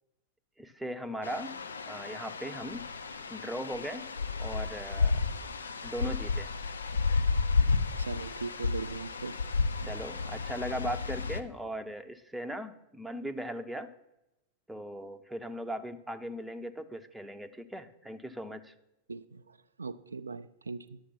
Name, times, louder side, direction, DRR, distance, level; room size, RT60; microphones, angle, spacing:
voice 1, 0.6-1.5 1.9-2.8 3.3-4.1 4.4-5.2 5.8-6.5 9.8-13.9 14.7-18.7, equal, 5° right, 8 dB, 0.7 m, -38 dB
sound 1, 1.2-11.4, left 4 dB, 70° left, 0.5 m, -32 dB
voice 2, 8.0-9.4 19.1-21.0, right 4 dB, 75° right, 11 dB, 0.3 m, -40 dB
11.0 x 6.6 x 5.5 m, 0.92 s
figure-of-eight pair, 90°, 0 cm